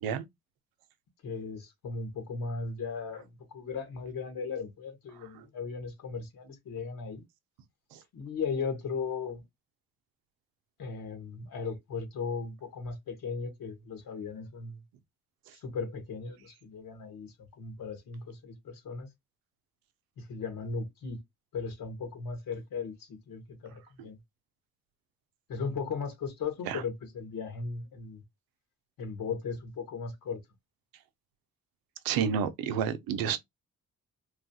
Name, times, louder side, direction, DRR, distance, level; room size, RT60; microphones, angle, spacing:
voice 1, 1.2-7.2 8.1-9.4 10.8-14.8 15.6-19.1 20.2-21.2 21.5-24.2 25.5-28.2 29.0-30.4, left 5 dB, 70° left, 1.4 m, -37 dB
voice 2, 32.0-33.4, right 7 dB, 85° right, 0.6 m, -30 dB
3.1 x 2.4 x 2.7 m
supercardioid pair, 65°, 35 cm